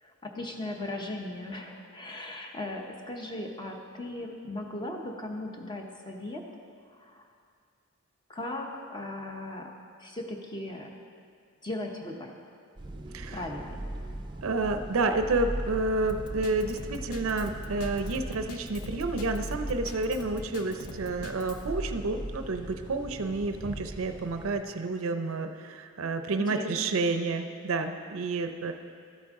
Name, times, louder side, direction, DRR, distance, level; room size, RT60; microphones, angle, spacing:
voice 1, 0.0-6.4 6.9-7.3 8.3-9.7 10.0-10.9 11.6-12.3 13.3-13.8 26.5-26.9, left 1 dB, 20° left, 2 dB, 0.8 m, -38 dB
sound 1, 12.8-24.6, right 1 dB, 20° right, 0.5 m, -39 dB
voice 2, 14.4-28.7, right 3 dB, 65° right, 7 dB, 0.5 m, -30 dB
Drum kit, 16.1-21.6, left 3 dB, 80° left, 0.7 m, -45 dB
12.5 x 8.6 x 3.6 m, 2.3 s
head